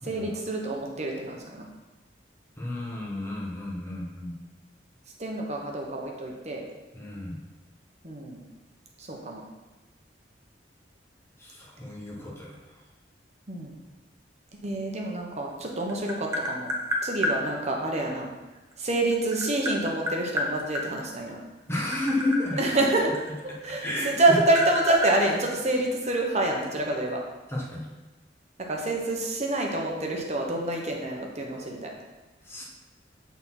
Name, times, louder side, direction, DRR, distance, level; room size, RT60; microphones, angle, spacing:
voice 1, 0.0-1.7 5.2-6.6 8.0-8.4 9.0-9.4 13.5-13.8 14.6-16.7 17.0-18.3 18.8-21.4 22.5-23.1 23.4-27.2 28.6-31.9, right 2 dB, 40° right, 0 dB, 1.2 m, -27 dB
voice 2, 2.6-4.3 6.9-7.4 11.4-12.8 21.7-22.6 23.5-24.4 27.5-27.9 32.4-32.6, left 1 dB, 15° left, -3 dB, 1.4 m, -32 dB
Tap, 15.5-17.4 18.7-20.9 21.6-23.8 24.1-26.1, left 1 dB, 15° right, 1.0 m, -30 dB
6.9 x 4.1 x 5.9 m, 1.1 s
head